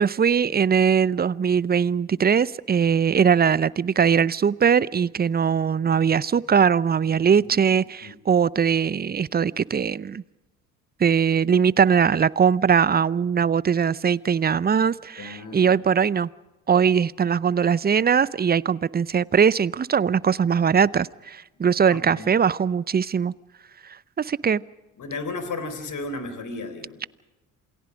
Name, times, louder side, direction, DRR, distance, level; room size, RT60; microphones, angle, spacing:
voice 1, 0.0-10.2 11.0-16.3 16.7-23.3 24.2-24.6, right 7 dB, 25° right, 0.6 m, -21 dB
voice 2, 15.2-15.7 21.9-22.4 25.0-27.0, left 3 dB, 45° left, 4.1 m, -34 dB
28.0 x 19.5 x 5.1 m
hypercardioid pair, 50°, 40 cm